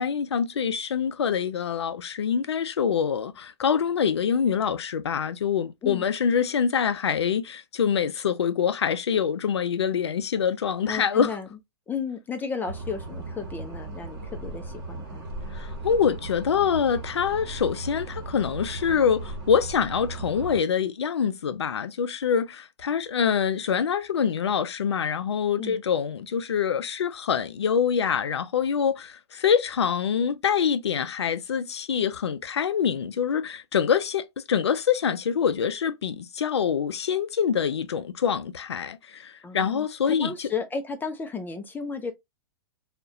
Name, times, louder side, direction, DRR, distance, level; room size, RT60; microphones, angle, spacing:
voice 1, 0.0-11.4 15.5-40.5, left 7 dB, 90° left, 0.4 m, -25 dB
voice 2, 10.9-11.5 11.9-15.2 25.6-25.8 39.4-42.1, left 5 dB, 15° left, 0.3 m, -33 dB
sound 1, 12.7-20.6, right 2 dB, 55° right, 0.9 m, -37 dB
2.4 x 2.1 x 2.6 m
hypercardioid pair, 115°, 14 cm